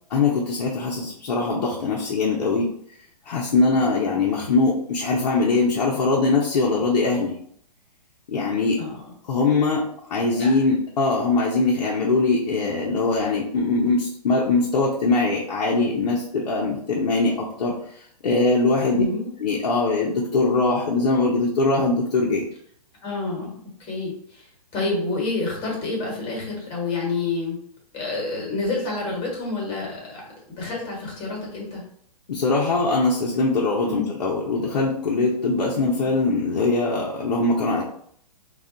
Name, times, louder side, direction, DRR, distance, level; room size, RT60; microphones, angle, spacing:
voice 1, 0.1-2.7 3.3-7.3 8.3-8.8 9.3-17.7 18.2-19.0 19.4-22.4 32.3-37.8, left 3 dB, 75° left, -4 dB, 0.7 m, -22 dB
voice 2, 18.9-19.3 23.0-27.6 27.9-31.8 33.8-34.1 36.0-36.1, left 3 dB, 25° left, -2 dB, 1.2 m, -29 dB
2.3 x 2.2 x 3.7 m, 0.66 s
hypercardioid pair, 145°, 21 cm